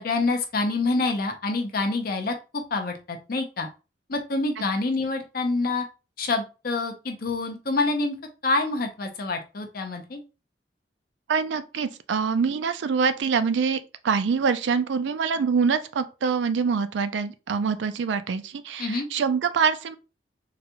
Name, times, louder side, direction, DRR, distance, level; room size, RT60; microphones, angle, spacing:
voice 1, 0.0-3.7 4.1-5.8 6.2-8.2 8.4-10.2 18.8-19.1, left 3 dB, 55° left, 0.7 m, -27 dB
voice 2, 11.3-20.0, right 5 dB, 85° right, 0.4 m, -25 dB
3.9 x 2.3 x 2.9 m
head